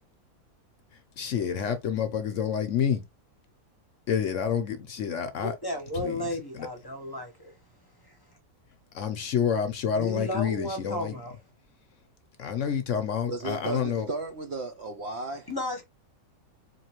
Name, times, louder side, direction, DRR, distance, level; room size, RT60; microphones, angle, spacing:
voice 1, 1.2-3.0 4.1-5.5 6.0-6.1 8.9-11.1 12.4-14.1, left 8 dB, 65° left, 0.9 m, -28 dB
voice 2, 5.4-7.6 8.0-8.2 9.9-11.4 15.5-15.8, left 1 dB, 20° left, 0.8 m, -34 dB
voice 3, 13.3-15.5, right 2 dB, 60° right, 0.7 m, -34 dB
4.1 x 3.0 x 2.9 m
omnidirectional pair, 1.6 m